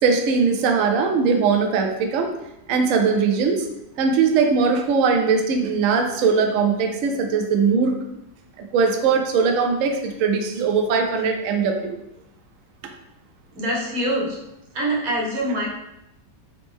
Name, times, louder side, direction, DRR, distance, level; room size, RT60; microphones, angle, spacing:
voice 1, 0.0-2.3 2.7-3.7 4.0-7.9 8.6-12.0, right 5 dB, 85° right, 3 dB, 0.7 m, -20 dB
voice 2, 13.5-14.4 14.7-15.7, right 1 dB, 55° right, -4 dB, 1.5 m, -24 dB
4.0 x 3.2 x 3.5 m, 0.85 s
omnidirectional pair, 2.0 m